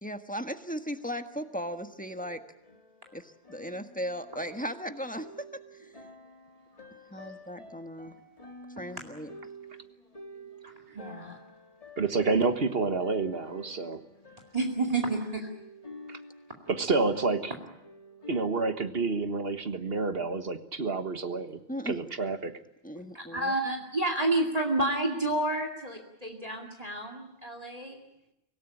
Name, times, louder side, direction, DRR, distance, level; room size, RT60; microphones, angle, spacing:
voice 1, 0.0-2.4 3.1-6.1 7.1-8.1 8.8-9.3 21.7-22.0 22.8-23.6, equal, 10° left, 7 dB, 1.4 m, -37 dB
sound 1, 0.9-18.5, equal, 35° left, 2.2 m, -50 dB
voice 2, 10.9-11.4 14.5-15.5 23.1-28.0, right 2 dB, 35° right, 3 dB, 2.5 m, -30 dB
voice 3, 12.0-14.0 16.1-16.2 16.7-17.5 18.3-21.6 21.9-22.5, right 3 dB, 70° right, 9 dB, 1.7 m, -29 dB
25.0 x 17.5 x 10.0 m, 0.86 s
omnidirectional pair, 1.0 m